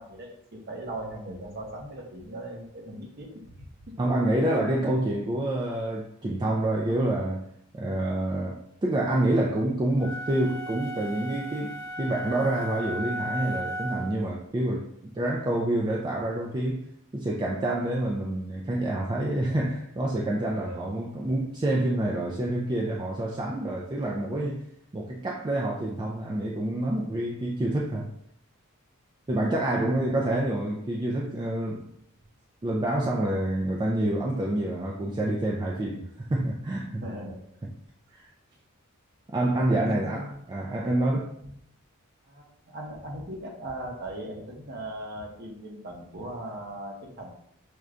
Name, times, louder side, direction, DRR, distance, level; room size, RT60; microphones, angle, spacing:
voice 1, 0.0-4.3 6.8-7.0 20.5-21.2 29.7-30.2 37.0-37.4 39.7-40.4 41.4-41.5 42.3-47.3, right 1 dB, 45° right, 0.8 m, -39 dB
voice 2, 4.0-7.5 7.7-16.9 17.1-24.6 24.9-28.1 29.3-31.8 32.6-37.0 38.1-38.3 39.3-41.3, right 1 dB, 20° right, 0.3 m, -27 dB
sound 1, 10.0-14.2, right 1 dB, 60° left, 0.4 m, -35 dB
6.1 x 2.2 x 2.4 m
head